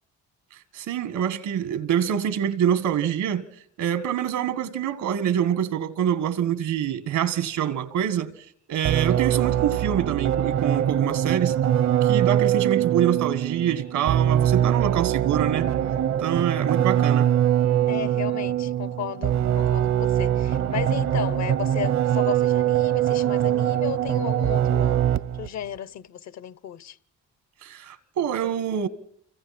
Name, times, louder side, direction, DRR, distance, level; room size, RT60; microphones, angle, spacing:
voice 1, 0.7-3.5 3.8-8.3 8.7-11.6 12.0-15.7 16.2-17.3 27.6-28.9, right 9 dB, 85° right, 1.7 m, -25 dB
sound 1, 8.8-25.5, right 11 dB, 65° right, 0.9 m, -23 dB
voice 2, 17.9-25.0 25.4-27.0, left 9 dB, 60° left, 0.9 m, -34 dB
29.5 x 25.0 x 4.3 m
cardioid pair, 90°, 30 cm